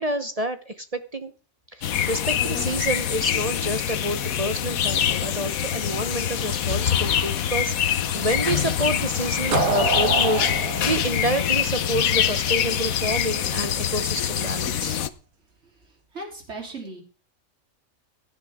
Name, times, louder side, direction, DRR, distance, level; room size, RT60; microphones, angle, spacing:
voice 1, 0.0-1.3 1.7-15.0, right 1 dB, 30° right, 9 dB, 0.8 m, -28 dB
sound 1, 1.8-15.1, left 9 dB, 80° left, 1.3 m, -25 dB
sound 2, 9.5-12.4, right 4 dB, 80° right, 2.0 m, -26 dB
voice 2, 16.1-17.0, right 3 dB, 55° right, 1 dB, 3.8 m, -36 dB
17.0 x 11.0 x 3.6 m, 0.37 s
omnidirectional pair, 1.4 m